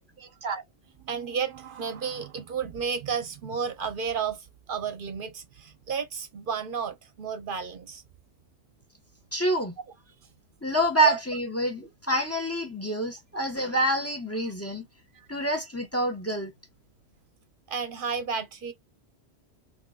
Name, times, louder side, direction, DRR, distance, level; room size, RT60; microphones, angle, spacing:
voice 1, 0.2-0.6 1.0-8.0 11.0-11.2 15.1-15.3 17.7-18.7, right 6 dB, 55° right, 0.8 m, -32 dB
voice 2, 9.3-9.7 10.6-14.9 15.3-16.5, right 1 dB, 15° left, 0.9 m, -27 dB
3.7 x 3.2 x 2.3 m
omnidirectional pair, 1.1 m